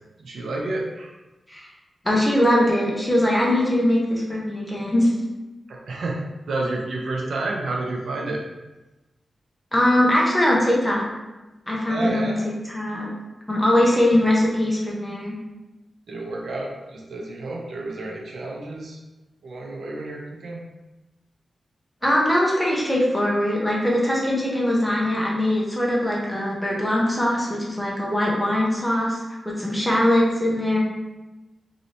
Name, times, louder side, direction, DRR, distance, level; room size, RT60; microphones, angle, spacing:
voice 1, 0.2-1.1 5.7-8.4 11.9-12.4 13.9-14.1 16.1-19.0 19.4-20.6, right 2 dB, 70° right, -1 dB, 0.5 m, -30 dB
voice 2, 2.0-5.1 9.7-11.0 11.7-12.3 12.7-13.1 13.5-15.3 22.0-30.8, left 1 dB, 5° left, -4 dB, 0.6 m, -21 dB
3.1 x 2.7 x 2.7 m, 1.1 s
wide cardioid pair, 165°, 0 cm